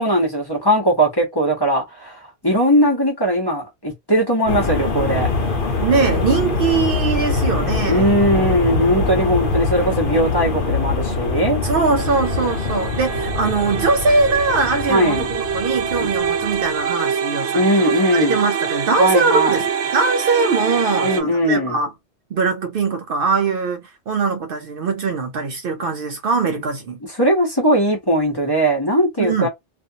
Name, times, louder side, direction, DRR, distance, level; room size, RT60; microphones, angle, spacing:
voice 1, 0.0-5.3 7.9-11.6 14.9-15.3 16.0-16.1 17.5-18.4 19.0-19.6 21.0-21.8 27.1-29.5, equal, 25° left, 0.9 m, -19 dB
sound 1, 4.5-16.8, left 3 dB, 55° left, 1.0 m, -23 dB
voice 2, 5.8-8.0 11.6-19.7 19.9-21.9 22.3-27.0 29.2-29.5, right 4 dB, 60° right, 0.7 m, -21 dB
sound 2, 12.0-21.2, right 7 dB, 80° right, 1.0 m, -25 dB
2.6 x 2.5 x 2.7 m
omnidirectional pair, 1.1 m